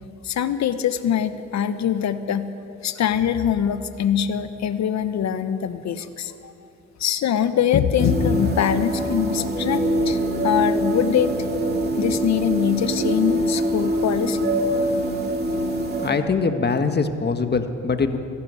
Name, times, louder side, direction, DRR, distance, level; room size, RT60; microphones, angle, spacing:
voice 1, 0.2-2.5 2.8-6.5 7.0-11.3 12.0-14.4, left 9 dB, 65° left, 11 dB, 1.2 m, -23 dB
sound 1, 8.0-16.1, right 1 dB, 30° right, 2.8 m, -24 dB
voice 2, 15.8-18.2, left 4 dB, 35° left, 8 dB, 1.6 m, -23 dB
22.0 x 12.0 x 9.6 m, 2.7 s
cardioid pair, 90°, 30 cm